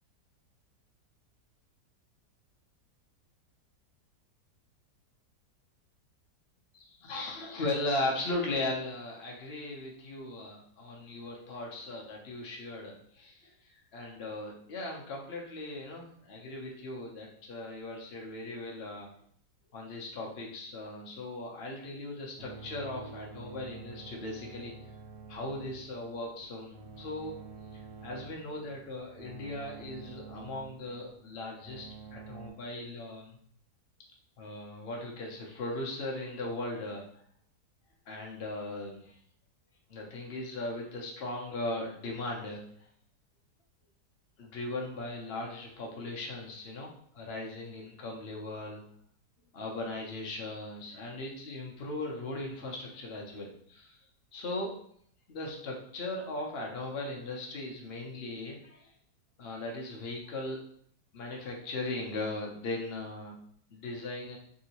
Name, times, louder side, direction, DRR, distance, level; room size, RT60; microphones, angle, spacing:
voice 1, 6.7-19.1 19.7-24.7 25.3-31.9 32.1-33.4 34.4-37.1 38.1-39.2 39.9-42.6 44.4-46.9 47.1-48.8 49.5-54.0 54.3-54.7 55.3-58.9 59.4-60.6 61.1-63.4 63.7-64.4, left 2 dB, 60° left, -1 dB, 0.6 m, -38 dB
sound 1, 22.4-32.5, right 4 dB, 70° right, 0.6 m, -48 dB
3.5 x 2.8 x 2.8 m, 0.64 s
omnidirectional pair, 1.8 m